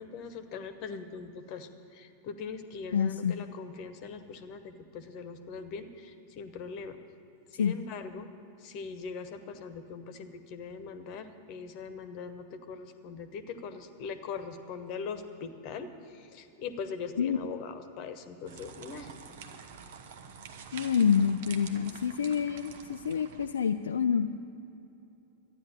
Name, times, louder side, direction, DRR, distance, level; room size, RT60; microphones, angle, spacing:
voice 1, 0.0-7.0 7.5-8.3 8.6-19.1, left 5 dB, 40° left, 10 dB, 1.1 m, -41 dB
voice 2, 2.9-3.4 7.6-7.8 17.2-17.4 20.7-24.3, left 7 dB, 65° left, 7 dB, 0.4 m, -27 dB
sound 1, 18.5-23.5, right 6 dB, 55° right, 1.0 m, -47 dB
13.0 x 9.9 x 8.5 m, 2.9 s
figure-of-eight pair, 90°, 0 cm